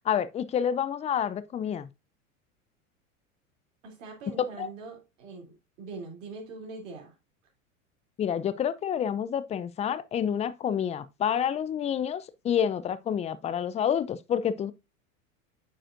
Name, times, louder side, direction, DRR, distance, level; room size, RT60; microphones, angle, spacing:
voice 1, 0.1-1.9 4.6-4.7 8.2-14.7, left 8 dB, 15° left, 0.4 m, -28 dB
voice 2, 3.8-7.1, right 3 dB, 70° right, 3.0 m, -42 dB
8.9 x 5.0 x 2.5 m
hypercardioid pair, 90°, 40 cm